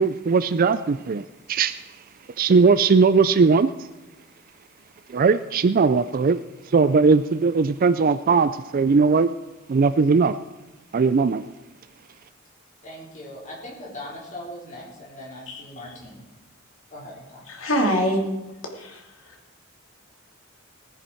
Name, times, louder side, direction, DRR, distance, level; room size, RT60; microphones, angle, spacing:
voice 1, 0.0-1.8 2.4-3.7 5.1-6.4 6.7-9.3 9.7-10.4 10.9-11.4, right 4 dB, 45° right, 13 dB, 0.4 m, -19 dB
voice 2, 12.8-16.2 16.9-17.7, left 1 dB, 40° left, -4 dB, 4.5 m, -40 dB
voice 3, 17.5-18.2 18.6-19.3, equal, 70° left, 1 dB, 2.9 m, -25 dB
18.5 x 10.5 x 4.5 m, 1.1 s
head